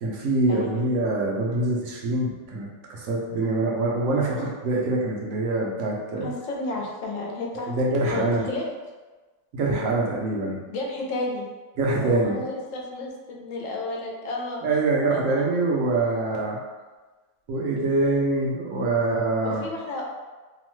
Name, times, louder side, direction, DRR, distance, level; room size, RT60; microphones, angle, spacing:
voice 1, 0.0-6.3 7.7-8.5 9.5-10.6 11.8-12.4 14.6-16.6 17.5-19.6, right 2 dB, 85° right, -2 dB, 1.0 m, -24 dB
voice 2, 6.2-7.7 8.1-8.7 10.7-11.5 12.0-14.7 15.1-15.2 19.4-20.0, left 2 dB, 80° left, -1 dB, 1.0 m, -32 dB
2.9 x 2.1 x 3.0 m, 1.3 s
omnidirectional pair, 1.3 m